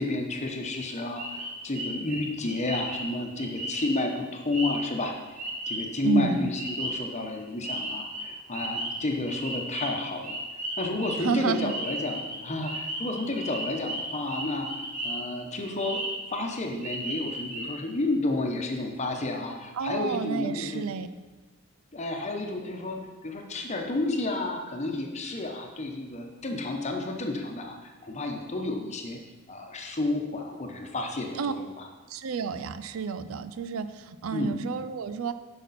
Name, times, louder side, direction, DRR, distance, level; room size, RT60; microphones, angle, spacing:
voice 1, 0.0-5.1 5.7-10.4 10.8-14.7 15.0-16.0 16.3-20.9 21.9-29.2 29.5-31.9 34.3-34.6, left 2 dB, 35° left, 3 dB, 0.9 m, -31 dB
sound 1, 1.2-6.1 6.6-7.4 7.6-15.3 15.6-16.4 16.8-17.7, right 1 dB, 40° right, 1.5 m, -35 dB
voice 2, 6.0-6.5 11.2-11.7 19.7-21.1 31.4-31.5 32.1-35.3, right 5 dB, 85° right, 12 dB, 0.4 m, -30 dB
8.2 x 5.9 x 4.2 m, 1.2 s
head